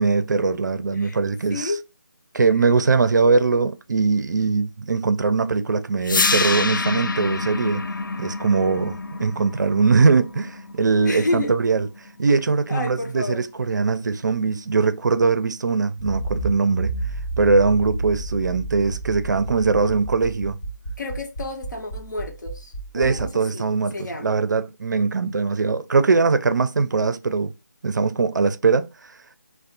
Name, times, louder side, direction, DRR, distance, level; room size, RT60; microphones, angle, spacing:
voice 1, 0.0-1.7 2.3-7.8 8.2-11.9 12.2-16.9 17.4-20.6 22.9-27.5 27.8-28.9, right 4 dB, 65° right, 0.4 m, -21 dB
voice 2, 1.5-1.8 11.0-11.6 12.7-13.5 21.0-23.7 23.9-24.4, left 2 dB, 65° left, 0.9 m, -30 dB
sound 1, 6.0-12.1, left 3 dB, 90° left, 0.4 m, -27 dB
Accelerating revving vroom, 16.0-23.3, right 2 dB, 20° left, 0.4 m, -30 dB
2.4 x 2.1 x 2.8 m
figure-of-eight pair, 170°, 10 cm